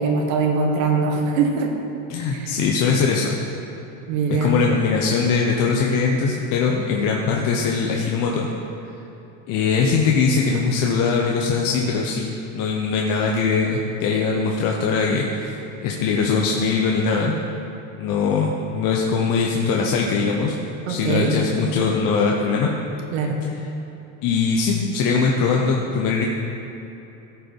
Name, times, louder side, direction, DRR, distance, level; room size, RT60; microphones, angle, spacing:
voice 1, 0.0-1.7 2.3-2.6 4.1-4.6 20.8-21.3 23.1-23.4, right 4 dB, 90° right, 2 dB, 1.5 m, -22 dB
voice 2, 2.1-3.4 4.3-8.5 9.5-15.6 15.8-17.3 18.0-20.6 20.9-22.7 24.2-26.2, left 5 dB, 55° left, -1 dB, 0.9 m, -21 dB
14.0 x 5.5 x 4.5 m, 2.9 s
cardioid pair, 135°, 39 cm